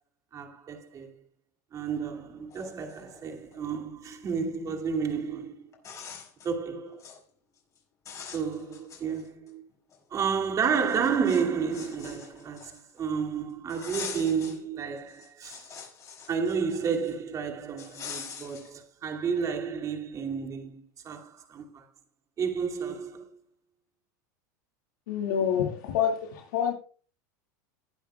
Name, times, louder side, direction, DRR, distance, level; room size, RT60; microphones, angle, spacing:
voice 1, 0.3-1.1 1.7-5.6 6.4-7.0 8.3-9.6 10.1-15.7 16.3-21.8 22.4-23.3, right 6 dB, 35° right, 2.6 m, -31 dB
sound 1, 2.1-2.2 2.5-3.6 5.1-5.2 5.7-6.5 6.9-7.2 7.6-7.8 8.0-9.5 9.9-10.0 10.8-13.0 13.7-14.6 15.0-17.1 17.8-18.7, left 6 dB, 35° left, 6.2 m, -43 dB
voice 2, 25.1-26.7, left 8 dB, 75° left, 2.2 m, -27 dB
20.0 x 9.1 x 2.4 m
supercardioid pair, 110°, 10 cm